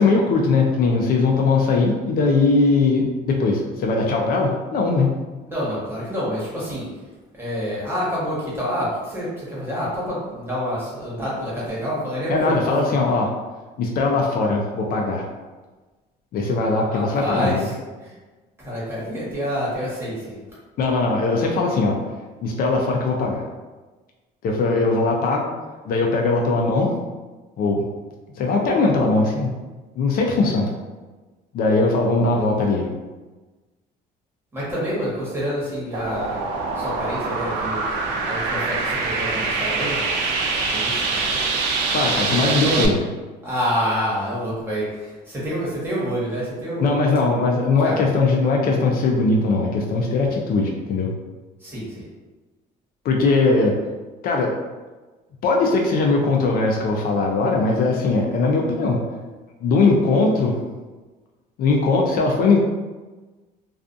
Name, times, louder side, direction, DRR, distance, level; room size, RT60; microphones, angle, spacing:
voice 1, 0.0-5.2 12.3-13.3 13.8-15.2 16.3-17.7 20.8-22.0 22.4-23.4 24.4-25.5 25.8-26.9 27.6-27.8 28.4-29.5 30.0-30.7 31.5-32.9 41.9-43.0 46.8-51.1 53.0-53.7 54.2-54.5 55.4-59.0 59.6-60.6 61.6-62.6, left 3 dB, 60° left, 0 dB, 0.4 m, -20 dB
voice 2, 5.5-6.9 7.4-12.9 16.9-17.7 18.6-20.4 31.9-32.5 34.5-36.4 36.8-37.8 38.2-40.0 40.6-41.2 42.4-42.8 43.4-46.9 47.8-48.0 51.6-52.1, equal, 15° right, -8 dB, 1.2 m, -27 dB
sound 1, 35.9-42.9, right 4 dB, 90° right, 0.4 m, -24 dB
2.4 x 2.3 x 2.5 m, 1.2 s
cardioid pair, 110°, 17 cm